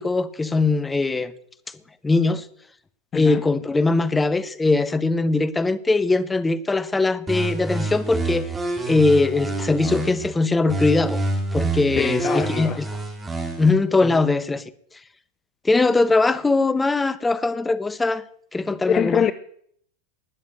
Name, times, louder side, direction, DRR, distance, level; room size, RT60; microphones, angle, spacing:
voice 1, 0.0-1.3 2.0-2.5 3.1-8.5 8.9-11.2 11.5-12.9 13.6-14.6 15.6-18.2 18.5-19.3, left 3 dB, 10° left, 1.0 m, -21 dB
sound 1, 7.3-10.3 10.7-13.7, right 2 dB, 15° right, 4.0 m, -27 dB
voice 2, 12.0-12.8 18.9-19.3, left 8 dB, 30° left, 0.6 m, -23 dB
20.0 x 7.4 x 7.9 m
hypercardioid pair, 105°, 0 cm